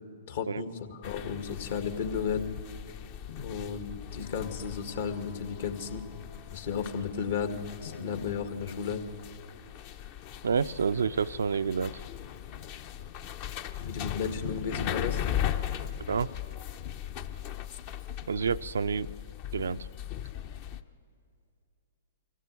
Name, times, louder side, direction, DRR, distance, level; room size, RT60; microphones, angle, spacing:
voice 1, 0.3-2.5 3.4-6.0 6.5-9.0 13.8-15.2, left 6 dB, 65° left, 7 dB, 1.9 m, -34 dB
sound 1, 1.0-20.8, left 11 dB, 45° left, 0.8 m, -38 dB
voice 2, 10.4-12.0 16.1-16.3 18.3-19.1 19.5-19.9, right 6 dB, 75° right, 12 dB, 0.5 m, -28 dB
25.0 x 16.0 x 8.3 m, 2.6 s
hypercardioid pair, 120°, 0 cm